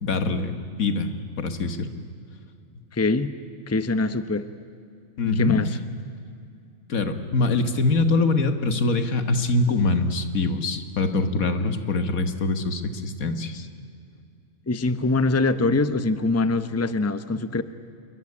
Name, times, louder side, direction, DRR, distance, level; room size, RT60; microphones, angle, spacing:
voice 1, 0.0-1.9 5.2-5.6 6.9-13.7, left 3 dB, 85° left, 9 dB, 2.0 m, -24 dB
voice 2, 2.9-3.3 3.7-4.4 5.4-5.7 14.7-17.6, left 3 dB, 15° left, 12 dB, 0.8 m, -23 dB
27.0 x 22.5 x 9.9 m, 2.4 s
omnidirectional pair, 1.4 m